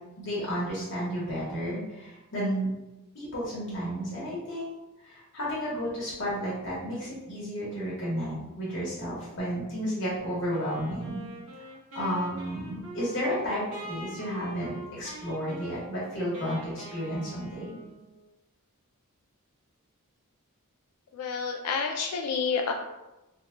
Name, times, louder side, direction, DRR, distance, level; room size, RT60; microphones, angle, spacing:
voice 1, 0.2-2.7 3.1-4.7 5.0-11.2 11.9-17.8, equal, 55° left, -7 dB, 1.0 m, -32 dB
Wind instrument woodwind instrument, 10.5-18.2, right 1 dB, 85° right, 1.2 m, -43 dB
voice 2, 21.1-22.7, left 5 dB, 80° left, 2 dB, 0.3 m, -29 dB
3.0 x 2.2 x 3.6 m, 1.0 s
head